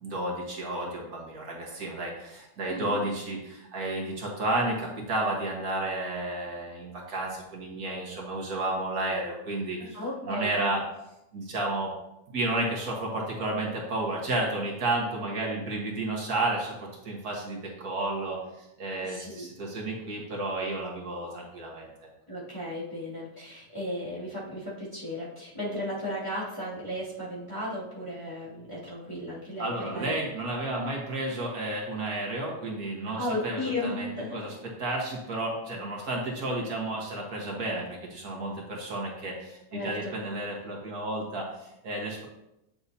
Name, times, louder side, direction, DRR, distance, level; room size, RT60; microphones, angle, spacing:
voice 1, 0.0-10.0 10.3-10.8 11.3-11.9 12.3-21.9 29.6-34.5 34.8-42.2, right 2 dB, 80° right, -2 dB, 2.0 m, -32 dB
voice 2, 2.7-3.0 9.8-10.8 19.0-19.8 22.3-30.1 33.2-34.4 39.7-40.1, left 1 dB, 20° left, -9 dB, 2.7 m, -35 dB
8.1 x 6.8 x 2.8 m, 0.88 s
omnidirectional pair, 1.6 m